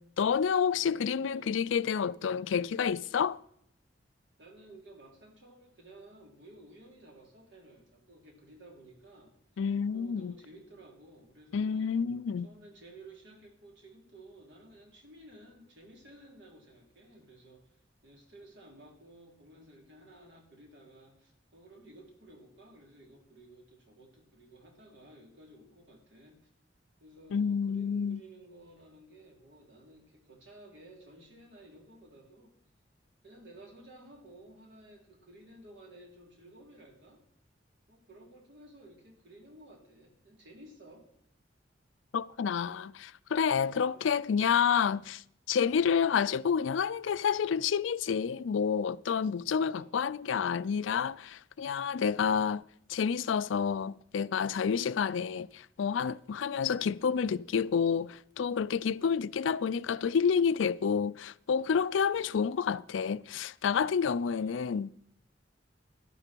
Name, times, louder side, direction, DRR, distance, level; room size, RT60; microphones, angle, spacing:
voice 1, 0.0-3.4 9.6-10.3 11.5-12.5 27.3-28.2 42.1-45.2 45.5-52.6 52.9-65.0, left 6 dB, 90° left, 0.4 m, -29 dB
voice 2, 0.8-1.7 4.4-9.6 9.9-11.9 12.4-17.7 18.0-26.4 27.0-32.5 33.2-37.2 37.9-41.0 43.8-44.1 49.4-50.1 64.3-64.8, right 1 dB, 70° right, 3.7 m, -54 dB
12.5 x 12.0 x 4.5 m
head